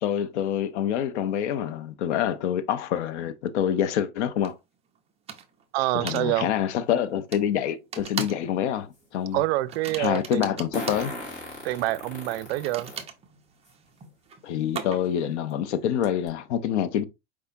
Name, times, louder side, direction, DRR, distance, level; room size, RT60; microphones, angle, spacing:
voice 1, 0.0-4.6 5.9-9.4 10.0-11.1 14.4-17.1, left 10 dB, 80° left, 0.8 m, -26 dB
sound 1, 4.4-4.5 5.3-5.6 6.1-6.3 7.3-7.4 7.9-8.5 8.8-9.0 9.7-11.1 12.5-15.2, right 6 dB, 20° right, 0.6 m, -38 dB
voice 2, 5.7-6.5 9.3-10.5 11.6-12.9, right 16 dB, 65° right, 0.5 m, -27 dB
Fart, 8.0-8.1 10.7-13.0 13.7-13.8 15.0-15.1 15.5-15.6 16.0-16.3, left 1 dB, 20° left, 2.3 m, -37 dB
4.9 x 3.5 x 2.7 m
supercardioid pair, 145°, 34 cm